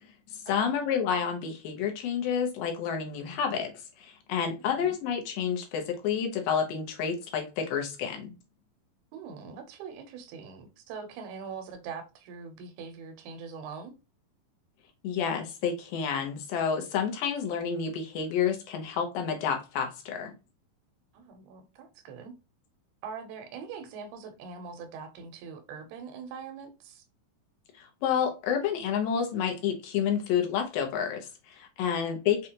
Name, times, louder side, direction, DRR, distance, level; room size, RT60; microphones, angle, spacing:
voice 1, 0.3-3.7 4.0-8.3 15.0-20.3 27.7-32.5, left 7 dB, 75° left, 2.3 m, -29 dB
voice 2, 3.3-3.6 4.8-5.0 9.1-13.9 21.1-22.3 23.0-27.0 31.9-32.2, right 5 dB, 85° right, 2.8 m, -43 dB
6.4 x 2.4 x 2.8 m
omnidirectional pair, 4.5 m